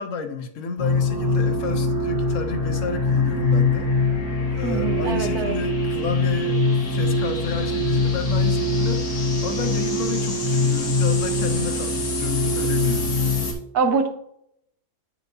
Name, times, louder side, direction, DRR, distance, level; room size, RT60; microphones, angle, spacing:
voice 1, 0.0-3.9 4.5-6.6 6.9-13.1, left 5 dB, 60° left, 8 dB, 1.0 m, -31 dB
sound 1, 0.8-13.5, left 2 dB, 85° left, 1.9 m, -23 dB
voice 2, 4.6-5.6 13.7-14.1, right 5 dB, 90° right, 5 dB, 1.4 m, -23 dB
9.6 x 4.5 x 2.7 m, 0.71 s
omnidirectional pair, 1.6 m